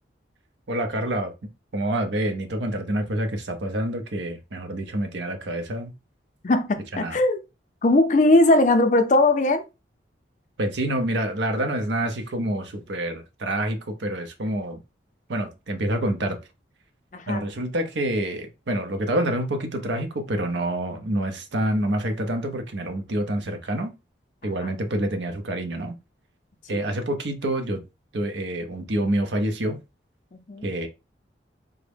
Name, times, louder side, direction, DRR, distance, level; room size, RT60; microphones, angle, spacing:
voice 1, 0.7-1.3 1.7-5.9 6.9-7.2 10.6-14.8 15.3-16.4 17.3-23.9 24.4-25.9 26.7-27.8 28.1-29.8 30.6-30.9, right 1 dB, 70° right, 0.6 m, -27 dB
voice 2, 6.4-7.4 7.8-9.6 17.1-17.4 24.6-24.7 26.7-26.8 30.3-30.7, left 2 dB, 40° left, 0.4 m, -19 dB
3.5 x 2.1 x 3.4 m
head